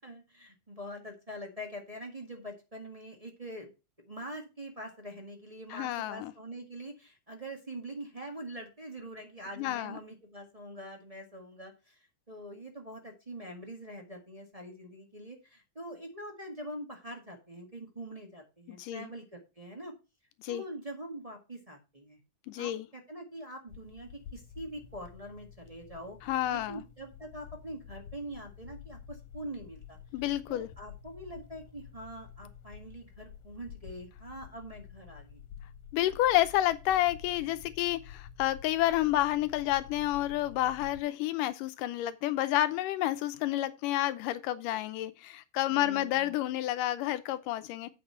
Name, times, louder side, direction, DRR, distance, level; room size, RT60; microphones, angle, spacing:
voice 1, 0.0-3.7 4.0-19.9 20.5-22.2 22.6-30.0 30.5-35.4 45.7-46.3, right 1 dB, 25° right, 0.8 m, -44 dB
voice 2, 5.7-6.3 9.6-10.0 18.7-19.1 20.4-20.6 22.5-22.9 26.2-26.8 30.1-30.7 35.9-47.9, left 14 dB, 85° left, 2.3 m, -30 dB
sound 1, 23.7-41.0, left 8 dB, 65° left, 2.4 m, -50 dB
8.7 x 5.5 x 5.6 m
omnidirectional pair, 3.7 m